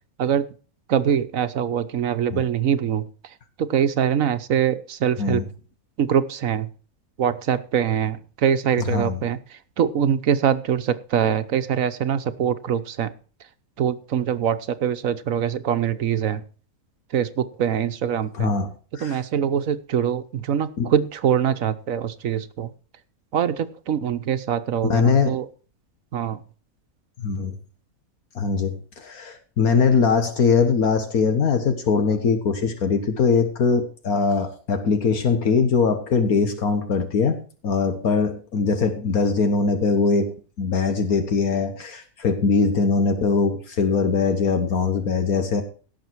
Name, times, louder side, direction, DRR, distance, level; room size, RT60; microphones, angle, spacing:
voice 1, 0.9-3.0 3.6-5.4 6.0-6.7 7.2-9.4 9.8-13.1 13.8-16.4 17.1-18.5 19.0-22.7 23.3-25.5 26.1-26.4, right 8 dB, 65° right, 12 dB, 1.3 m, -23 dB
voice 2, 8.9-9.2 18.4-19.2 20.8-20.9 24.8-25.4 27.2-27.6 28.3-37.4 37.6-45.6, left 5 dB, 75° left, 7 dB, 1.8 m, -21 dB
17.5 x 7.3 x 4.6 m, 0.39 s
omnidirectional pair, 1.6 m